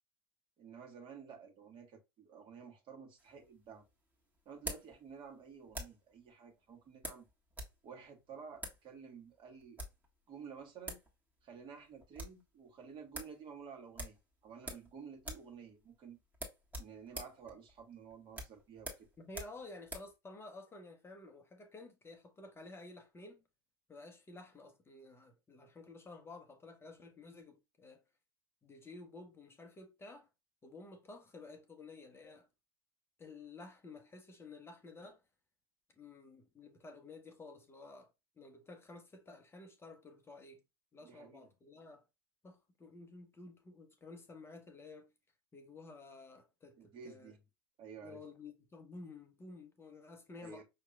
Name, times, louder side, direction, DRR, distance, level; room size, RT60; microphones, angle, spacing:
voice 1, 0.6-3.8 4.4-7.3 7.8-9.8 10.3-11.0 11.4-16.2 16.8-19.1 41.0-41.5 46.8-47.4 47.8-48.2 50.4-50.6, right 6 dB, 40° right, 1.4 m, -52 dB
sound 1, 3.2-6.1 7.0-7.8 8.0-8.1 8.6-8.8 9.6-10.1 10.6-10.7 10.9-11.1 11.4-11.5 11.8-12.4 12.8-12.9 13.1-13.4 13.9-14.9 15.2-15.5 15.8-15.9 16.3-20.1, right 1 dB, 15° right, 1.4 m, -46 dB
voice 2, 19.2-23.4 23.9-28.0 28.6-30.3 30.6-32.5 33.2-35.2 36.0-38.1 38.4-40.6 40.9-42.0 42.4-45.1 45.5-47.3 48.0-50.6, left 3 dB, 20° left, 0.8 m, -52 dB
5.6 x 2.8 x 2.3 m
figure-of-eight pair, 75°, 13 cm